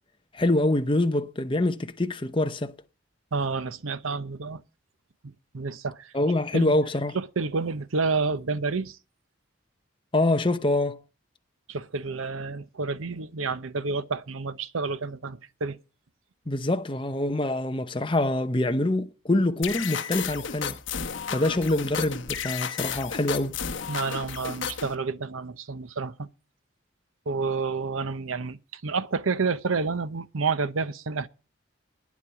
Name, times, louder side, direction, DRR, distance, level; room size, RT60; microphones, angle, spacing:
voice 1, 0.3-2.7 6.1-7.2 10.1-11.0 16.5-20.8 21.3-23.6, left 2 dB, 25° left, 0.8 m, -25 dB
voice 2, 3.3-4.6 5.2-6.1 6.5-6.7 7.1-9.0 11.7-15.8 23.9-26.3 27.3-31.3, right 4 dB, 85° right, 0.8 m, -29 dB
sound 1, 19.6-24.9, left 7 dB, 70° left, 1.1 m, -33 dB
10.0 x 7.3 x 8.9 m
head